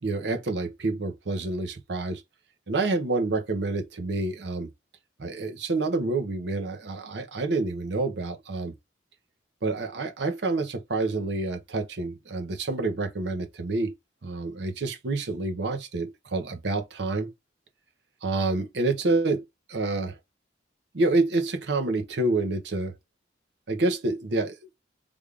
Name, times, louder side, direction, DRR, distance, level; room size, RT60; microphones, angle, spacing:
voice 1, 0.0-2.2 2.7-4.7 5.2-8.7 9.6-13.9 14.2-17.3 18.2-20.2 20.9-22.9 23.7-24.6, right 3 dB, 65° right, 0.7 m, -28 dB
3.5 x 2.4 x 3.3 m
head